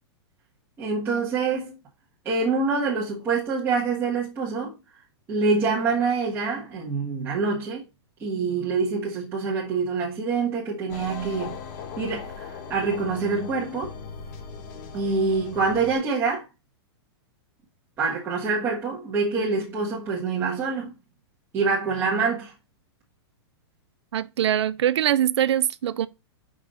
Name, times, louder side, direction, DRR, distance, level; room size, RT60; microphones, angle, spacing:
voice 1, 0.8-1.8 2.2-4.8 5.3-7.8 8.2-11.6 12.0-13.9 14.9-16.4 18.0-20.9 21.5-22.5, right 4 dB, 15° right, 1.5 m, -25 dB
sound 1, 10.9-16.0, left 6 dB, 40° left, 1.1 m, -39 dB
voice 2, 24.1-26.1, right 11 dB, 85° right, 0.5 m, -23 dB
5.3 x 4.8 x 3.9 m
supercardioid pair, 160°, 14 cm